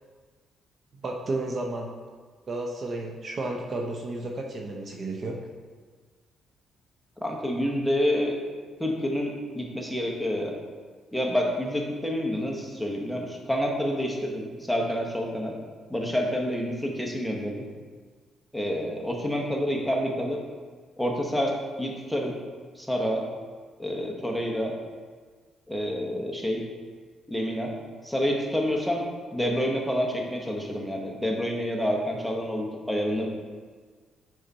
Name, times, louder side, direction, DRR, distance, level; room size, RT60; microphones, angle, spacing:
voice 1, 1.0-1.9 2.5-5.4, right 2 dB, 45° right, 1 dB, 0.8 m, -32 dB
voice 2, 7.2-8.3 8.8-10.5 11.1-15.5 15.9-17.6 18.5-20.4 21.0-22.3 22.8-23.2 23.8-24.7 25.7-26.6 27.3-27.7 28.0-29.0 29.3-33.3, equal, ahead, -1 dB, 1.2 m, -28 dB
6.6 x 5.0 x 4.2 m, 1.5 s
cardioid pair, 90°, 0 cm